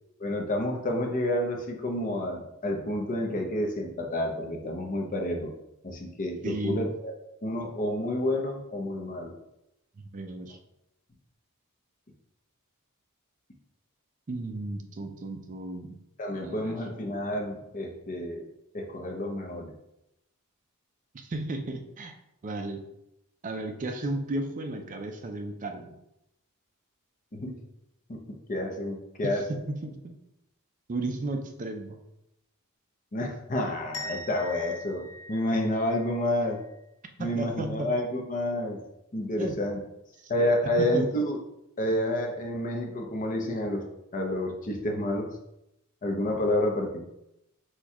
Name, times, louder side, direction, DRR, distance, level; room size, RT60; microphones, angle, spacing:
voice 1, 0.2-5.5 5.8-7.1 7.4-9.4 16.2-18.4 18.7-19.7 27.3-27.5 28.1-28.2 28.5-29.5 33.1-36.6 37.2-38.8 39.1-39.8 40.3-41.4 41.8-45.3 46.0-47.0, left 1 dB, 35° left, 2 dB, 0.6 m, -29 dB
voice 2, 6.4-6.9 10.1-10.6 14.3-15.9 16.4-16.8 21.1-22.1 22.4-22.8 23.4-26.0 29.3-30.2 30.9-32.0 37.2-37.9 39.4-39.6 40.6-41.1, right 2 dB, 35° right, 5 dB, 0.4 m, -34 dB
sound 1, 33.9-36.7, left 1 dB, 80° left, 1.4 m, -42 dB
4.2 x 2.3 x 4.7 m, 0.85 s
head